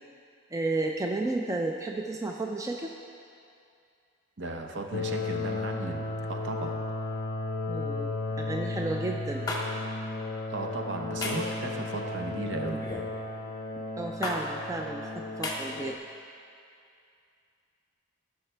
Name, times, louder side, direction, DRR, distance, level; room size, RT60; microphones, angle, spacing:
voice 1, 0.5-2.9 7.7-9.5 14.0-15.1 15.4-15.9, right 2 dB, 15° right, 1 dB, 0.3 m, -32 dB
voice 2, 4.4-6.8 10.5-12.9, right 2 dB, 55° right, 3 dB, 0.7 m, -36 dB
sound 1, 4.9-16.0, left 2 dB, 45° left, 0.5 m, -34 dB
sound 2, 9.5-9.6 11.2-11.5 12.8-13.1 14.2-14.4 15.4-15.6, left 2 dB, 20° left, 0.9 m, -32 dB
16.0 x 5.7 x 3.3 m, 2.5 s
head